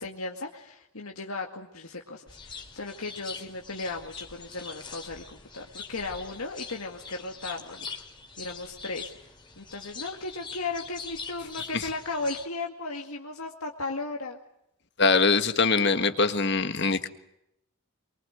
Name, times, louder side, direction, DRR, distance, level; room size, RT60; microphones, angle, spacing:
voice 1, 0.0-7.9 8.4-9.3 9.6-14.4, left 3 dB, 90° left, 1 dB, 2.1 m, -36 dB
sound 1, 2.3-12.5, left 5 dB, 20° left, 2.7 m, -43 dB
voice 2, 15.0-17.1, left 4 dB, 50° left, 9 dB, 1.7 m, -23 dB
23.5 x 23.5 x 8.0 m, 0.79 s
head